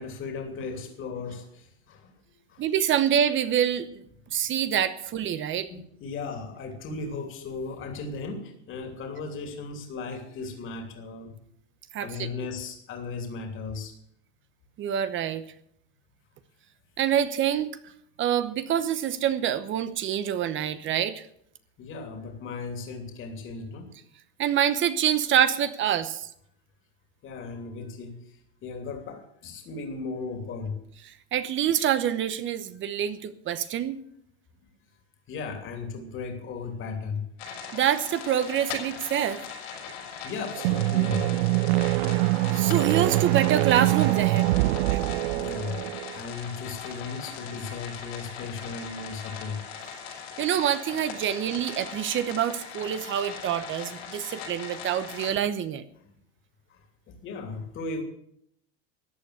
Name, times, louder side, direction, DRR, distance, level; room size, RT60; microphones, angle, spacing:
voice 1, 0.0-2.1 2.5-2.7 5.7-11.3 12.0-13.9 21.8-23.9 27.2-30.7 35.3-37.3 40.2-41.2 41.6-41.7 45.3-49.6 56.7-58.0, left 4 dB, 40° left, 4 dB, 2.9 m, -36 dB
voice 2, 2.6-4.0 4.3-5.7 11.9-12.3 14.8-15.4 17.0-17.7 18.2-21.3 24.4-26.3 31.3-34.0 37.7-39.5 42.1-42.2 42.5-44.5 44.9-45.0 50.4-55.8, right 10 dB, 35° right, 12 dB, 1.0 m, -26 dB
sound 1, 37.4-55.3, left 6 dB, 75° left, 6.2 m, -40 dB
sound 2, 40.6-46.2, right 19 dB, 75° right, 0.5 m, -24 dB
14.0 x 8.5 x 8.0 m, 0.72 s
hypercardioid pair, 105°, 33 cm